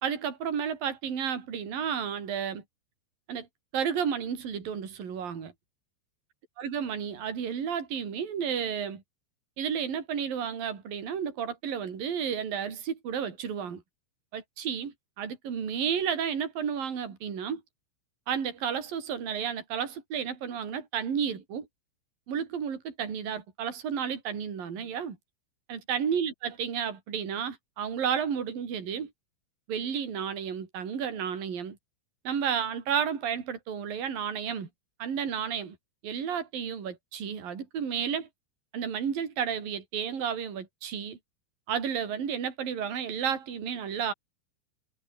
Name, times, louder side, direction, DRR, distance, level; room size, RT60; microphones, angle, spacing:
voice 1, 0.0-2.6 3.3-3.5 3.7-5.5 6.6-9.0 9.6-13.8 14.3-17.6 18.3-21.7 22.3-25.2 25.7-29.1 29.7-31.8 32.3-34.7 35.0-35.8 36.0-38.3 38.7-41.2 41.7-44.1, right 7 dB, 45° right, 5.6 m, -32 dB
omnidirectional pair, 5.9 m